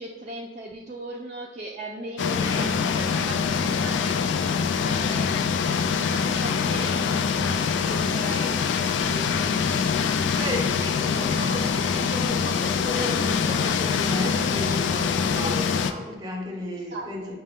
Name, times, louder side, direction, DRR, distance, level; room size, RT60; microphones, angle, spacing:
voice 1, 0.0-4.1 4.8-8.6 8.9-9.8 13.3-13.8 16.9-17.3, right 2 dB, 40° right, -3 dB, 0.4 m, -38 dB
sound 1, 2.2-15.9, left 6 dB, 80° left, 0.3 m, -24 dB
voice 2, 8.2-8.6 10.3-17.4, left 1 dB, 20° right, 0 dB, 0.8 m, -34 dB
6.4 x 2.2 x 3.6 m, 1.2 s
head